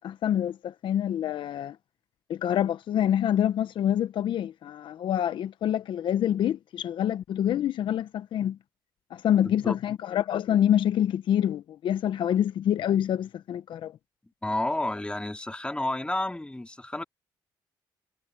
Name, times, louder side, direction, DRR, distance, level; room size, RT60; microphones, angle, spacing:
voice 1, 0.0-1.8 2.3-8.6 9.1-13.9, left 10 dB, 70° left, 0.9 m, -26 dB
voice 2, 9.4-9.8 14.4-17.0, left 1 dB, 10° left, 3.7 m, -31 dB
supercardioid pair, 65°, 9 cm